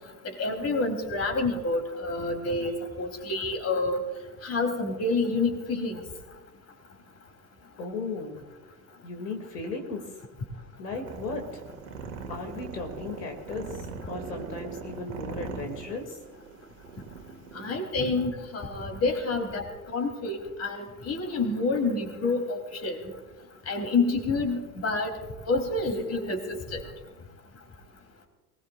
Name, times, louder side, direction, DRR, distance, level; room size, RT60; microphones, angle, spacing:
voice 1, 0.4-4.0 4.4-6.0 17.6-23.0 23.7-25.1 25.5-26.4 26.7-26.8, left 3 dB, 30° left, 4 dB, 3.6 m, -28 dB
voice 2, 7.8-8.4 9.0-10.1 10.8-11.6 12.3-16.2, left 3 dB, 80° left, 3 dB, 2.7 m, -36 dB
sound 1, 11.1-17.7, right 5 dB, 75° right, 2.2 m, -40 dB
23.0 x 19.5 x 2.5 m, 1.2 s
hypercardioid pair, 80°, 47 cm